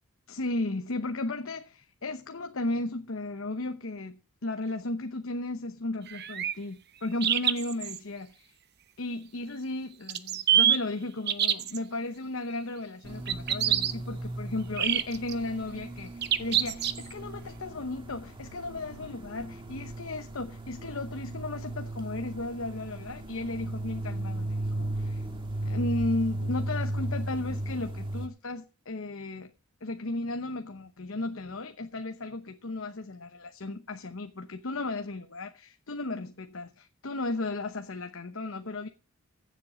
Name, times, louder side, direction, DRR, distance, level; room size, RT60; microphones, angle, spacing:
voice 1, 0.3-8.5 9.0-25.2 25.6-29.5 29.8-38.9, left 2 dB, 65° left, 0.9 m, -35 dB
sound 1, 6.1-6.5 7.2-8.0 10.1-10.8 11.3-11.8 13.3-13.9 14.8-15.3 16.2-17.1, right 10 dB, 45° right, 0.9 m, -25 dB
sound 2, 13.0-28.3, right 1 dB, 20° right, 1.5 m, -36 dB
15.5 x 7.6 x 5.2 m
head